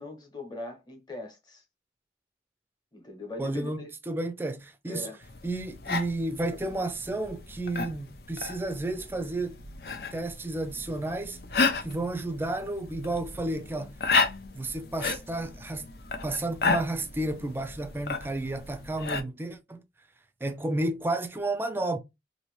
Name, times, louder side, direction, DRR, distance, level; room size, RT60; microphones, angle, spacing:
voice 1, 0.0-1.6 2.9-3.9 4.9-5.2, left 2 dB, 25° left, 1.0 m, -40 dB
voice 2, 3.4-5.1 5.4-9.6 10.1-11.4 11.8-14.0 14.5-15.9 16.2-19.8 20.4-22.0, right 2 dB, 10° right, 0.4 m, -32 dB
sound 1, 5.2-19.2, left 4 dB, 60° left, 0.5 m, -33 dB
2.9 x 2.6 x 3.1 m
head